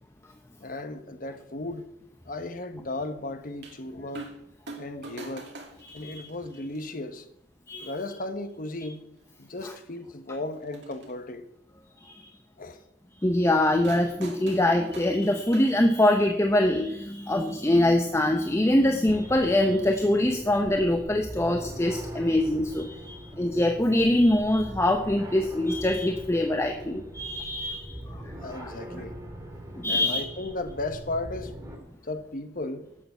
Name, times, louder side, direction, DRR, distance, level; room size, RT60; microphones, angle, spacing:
voice 1, 0.6-1.9 2.3-4.3 4.8-5.5 5.9-7.3 7.8-9.1 9.4-11.4 12.6-12.8 28.4-29.2 29.8-31.5 32.0-32.8, left 2 dB, 50° left, 1.1 m, -35 dB
sound 1, 3.6-3.8 4.1-4.4 4.7-6.8 7.7-7.8 8.8-8.9 9.2-9.3 10.5-11.1 13.8-16.3 17.5-17.6, right 2 dB, 70° right, 2.4 m, -44 dB
voice 2, 5.9-6.2 7.7-7.9 9.6-9.7 12.0-12.3 13.2-28.7 29.7-30.2, left 1 dB, 15° left, 0.8 m, -24 dB
sound 2, 19.1-31.8, equal, 20° right, 2.2 m, -42 dB
12.0 x 6.9 x 8.0 m
head